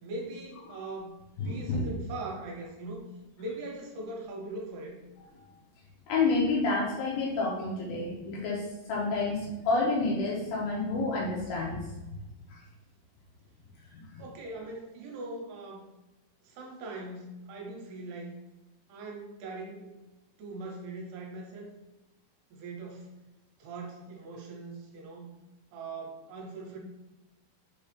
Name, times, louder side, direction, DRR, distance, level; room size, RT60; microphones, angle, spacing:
voice 1, 0.0-3.1 3.4-5.0 14.2-15.8 16.4-18.3 18.9-20.0 20.4-21.7 22.5-23.1 23.6-25.3 25.7-26.8, right 2 dB, 80° right, 0 dB, 2.5 m, -41 dB
voice 2, 1.4-1.8 6.1-12.2 13.9-14.0, left 3 dB, 80° left, -3 dB, 2.3 m, -29 dB
6.4 x 2.4 x 3.2 m, 1.0 s
omnidirectional pair, 4.6 m